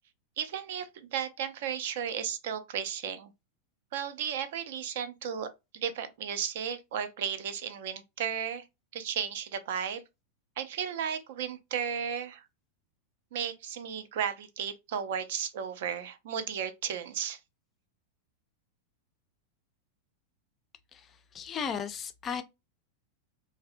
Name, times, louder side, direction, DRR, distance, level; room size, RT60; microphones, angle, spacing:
voice 1, 0.4-3.3 3.9-5.5 5.7-8.6 8.9-10.0 10.6-12.4 13.3-17.4, right 8 dB, 55° right, 0.3 m, -34 dB
voice 2, 20.9-22.4, left 7 dB, 25° left, 0.3 m, -36 dB
2.6 x 2.0 x 2.4 m
figure-of-eight pair, 90°, 0 cm